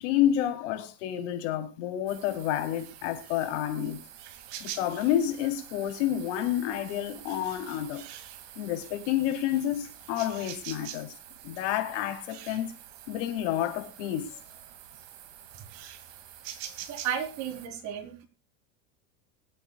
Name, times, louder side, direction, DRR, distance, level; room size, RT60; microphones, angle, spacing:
voice 1, 0.0-4.0 4.6-8.0 8.6-11.1 11.4-12.7 13.1-14.3, left 11 dB, 70° left, 3.4 m, -29 dB
sound 1, 2.1-17.7, right 11 dB, 65° right, 2.3 m, -46 dB
voice 2, 16.9-18.2, right 9 dB, 50° right, 4.0 m, -33 dB
24.0 x 8.5 x 2.3 m
supercardioid pair, 125°, 38 cm